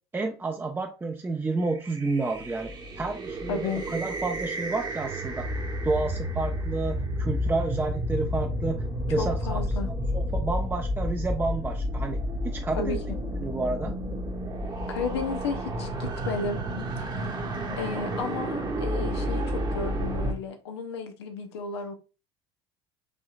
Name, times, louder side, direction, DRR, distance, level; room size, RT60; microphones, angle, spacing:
voice 1, 0.1-5.5 5.8-8.8 9.1-9.6 10.1-12.2 12.4-13.0 13.4-13.9, right 3 dB, 15° right, 3 dB, 0.7 m, -30 dB
sound 1, 1.7-20.3, equal, 35° right, 1.2 m, -31 dB
voice 2, 3.5-3.9 9.2-9.9 12.8-13.2 14.9-16.6 17.8-21.9, left 5 dB, 85° left, 6 dB, 0.8 m, -33 dB
5.3 x 3.0 x 2.4 m, 0.31 s
hypercardioid pair, 70°, 13 cm